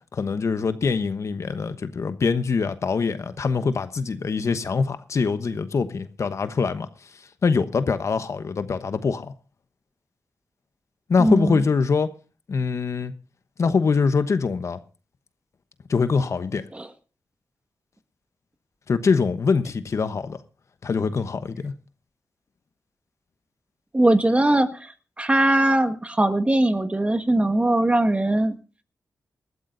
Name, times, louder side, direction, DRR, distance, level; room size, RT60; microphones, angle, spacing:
voice 1, 0.1-6.9 7.4-9.3 11.1-12.1 12.5-13.1 13.6-14.8 15.9-16.6 18.9-20.4 20.8-21.7, left 5 dB, 60° left, 1.0 m, -23 dB
voice 2, 11.2-11.6 16.7-16.9 23.9-24.9 25.2-28.6, right 1 dB, 20° right, 1.6 m, -20 dB
20.0 x 13.0 x 2.6 m
cardioid pair, 55°, 6 cm